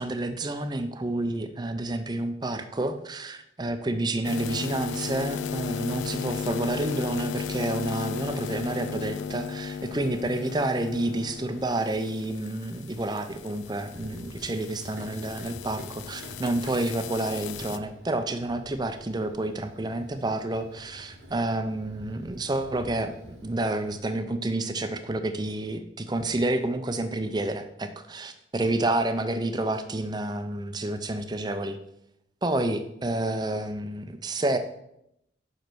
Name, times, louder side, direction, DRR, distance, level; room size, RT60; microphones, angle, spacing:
voice 1, 0.0-31.8 32.4-34.6, right 2 dB, 20° right, 9 dB, 0.5 m, -29 dB
sound 1, 4.2-17.8, left 7 dB, 85° left, 0.4 m, -35 dB
Run, 13.9-24.0, equal, 85° right, 1.4 m, -47 dB
5.6 x 5.2 x 6.0 m, 0.79 s
head